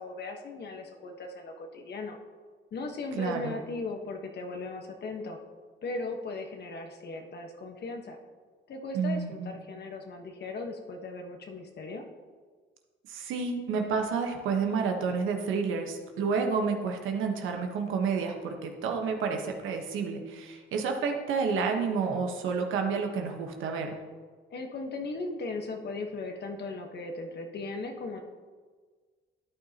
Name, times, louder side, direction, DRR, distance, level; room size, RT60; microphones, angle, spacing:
voice 1, 0.0-2.2 2.7-5.4 5.8-8.2 8.7-12.0 24.5-28.2, left 3 dB, 55° left, 3 dB, 1.3 m, -37 dB
voice 2, 3.2-3.6 8.9-9.6 13.1-24.0, right 5 dB, 90° right, 3 dB, 1.3 m, -30 dB
13.0 x 9.0 x 2.9 m, 1.5 s
cardioid pair, 90°, 20 cm